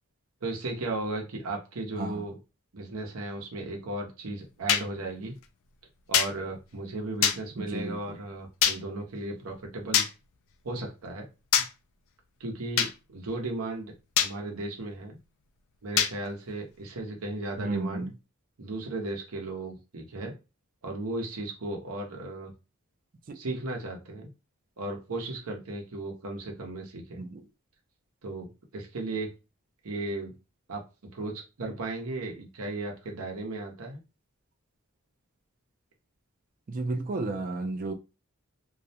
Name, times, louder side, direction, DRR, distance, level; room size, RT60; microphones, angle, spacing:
voice 1, 0.4-2.3 2.7-5.3 6.1-10.1 10.6-11.3 12.4-13.9 14.2-15.2 15.8-18.0 18.6-20.3 20.8-22.5 23.3-24.3 24.8-27.2 28.2-29.3 29.8-30.3 30.7-30.8 31.1-34.0, right 2 dB, 90° right, 0.8 m, -35 dB
sound 1, 4.7-4.8 6.1-6.3 7.2-7.4 8.6-8.8 9.9-10.1 11.5-11.7 12.8-12.9 14.2-14.3 16.0-16.1, left 9 dB, 65° left, 0.3 m, -23 dB
voice 2, 7.6-8.2 17.6-18.1 23.3-23.4 27.2-27.5 36.7-37.9, right 2 dB, 40° right, 0.4 m, -33 dB
2.4 x 2.1 x 2.7 m
head